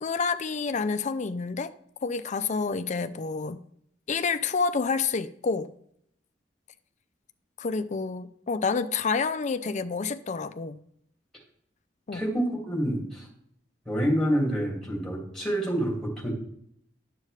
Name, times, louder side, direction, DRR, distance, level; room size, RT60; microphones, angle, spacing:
voice 1, 0.0-1.7 2.0-3.6 4.1-5.7 7.6-10.8 12.1-12.3, left 4 dB, 40° left, 0.5 m, -28 dB
voice 2, 12.1-13.3 13.9-16.3, equal, 5° left, 2.2 m, -27 dB
9.8 x 7.6 x 3.2 m
head